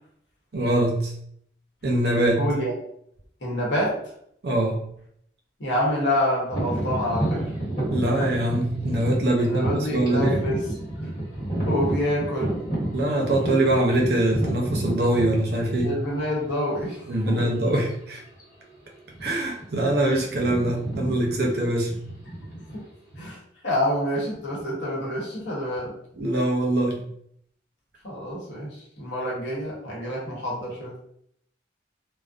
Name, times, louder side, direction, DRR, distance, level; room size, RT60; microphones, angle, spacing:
voice 1, 0.5-1.1 1.8-2.4 4.4-4.8 7.9-9.6 9.9-10.4 12.9-16.0 17.1-18.2 19.2-21.9 26.2-27.0, right 1 dB, 60° right, -1 dB, 0.6 m, -23 dB
voice 2, 2.3-2.7 3.4-4.0 5.6-7.5 9.4-10.6 11.7-12.7 15.8-17.5 22.7-22.9 23.2-26.0 28.0-30.9, left 1 dB, 80° left, -4 dB, 0.9 m, -27 dB
sound 1, 6.5-16.3 16.9-17.0 17.7-17.9 18.2-18.4 19.1-19.6 19.9-23.3, right 1 dB, 50° left, 1.1 m, -30 dB
2.5 x 2.0 x 2.4 m, 0.69 s
head